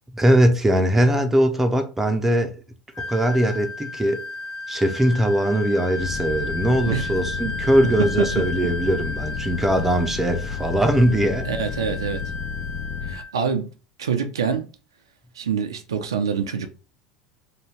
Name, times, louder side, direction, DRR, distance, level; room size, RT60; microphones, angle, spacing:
voice 1, 0.1-2.5 3.1-4.2 4.7-11.5, equal, 10° right, 0.5 m, -20 dB
Wind instrument woodwind instrument, 2.9-13.3, left 3 dB, 35° left, 0.5 m, -34 dB
sound 1, 6.0-13.2, left 6 dB, 60° left, 0.8 m, -32 dB
voice 2, 11.4-12.2 13.0-13.7 14.0-14.7 15.4-16.7, right 6 dB, 80° right, 0.4 m, -25 dB
2.6 x 2.2 x 3.2 m
figure-of-eight pair, 75°, 3 cm